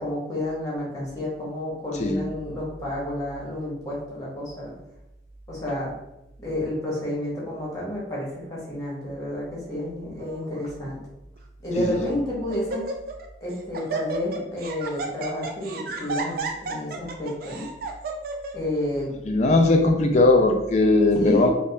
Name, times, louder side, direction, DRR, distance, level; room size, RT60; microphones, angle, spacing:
voice 1, 0.0-4.7 5.5-5.9 6.4-11.0 11.6-12.9 13.4-17.7 18.5-19.1 21.2-21.5, left 1 dB, 20° left, -5 dB, 0.9 m, -30 dB
Laughter, 10.2-10.6 11.4-11.5 11.9-12.2 12.5-13.3 13.5-18.5, right 4 dB, 50° right, 0.3 m, -33 dB
voice 2, 19.3-21.5, left 2 dB, 35° left, 4 dB, 0.3 m, -19 dB
3.3 x 2.1 x 2.6 m, 0.92 s
head